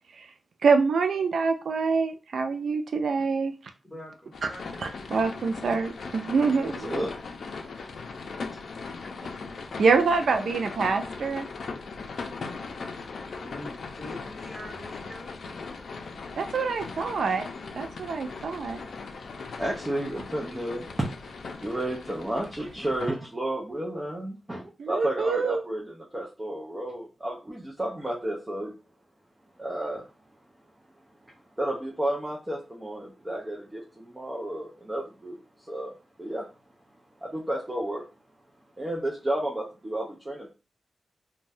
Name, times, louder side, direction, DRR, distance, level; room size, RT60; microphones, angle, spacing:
voice 1, 0.6-3.5 4.4-4.5 4.8-7.0 9.8-11.5 16.4-17.4 17.7-18.8 24.8-25.6, right 4 dB, 80° right, 0.3 m, -25 dB
voice 2, 3.9-4.7 13.4-15.3, equal, ahead, 1.4 m, -43 dB
sound 1, 4.3-23.1, left 4 dB, 75° left, 0.4 m, -39 dB
voice 3, 6.6-7.5 18.9-19.0 19.5-21.1 21.6-28.7 29.6-30.1 31.3-35.9 36.2-36.5 37.2-38.1 38.8-40.5, right 1 dB, 15° right, 0.6 m, -32 dB
2.5 x 2.2 x 3.4 m
wide cardioid pair, 140°, 0 cm